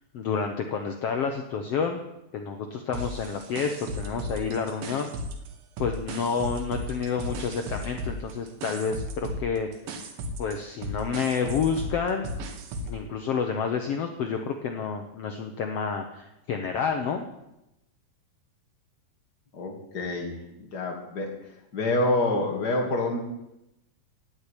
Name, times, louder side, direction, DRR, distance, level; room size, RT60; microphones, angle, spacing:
voice 1, 0.1-2.0 2.3-5.1 5.8-9.7 10.4-12.3 12.8-17.3, left 6 dB, 75° left, 5 dB, 1.4 m, -29 dB
sound 1, 2.9-5.5 5.8-13.0, equal, 75° right, 3.2 m, -35 dB
voice 2, 19.5-20.4 20.7-21.3 21.7-23.2, left 2 dB, 35° left, 2 dB, 2.3 m, -27 dB
16.5 x 6.1 x 10.0 m, 0.90 s
omnidirectional pair, 4.1 m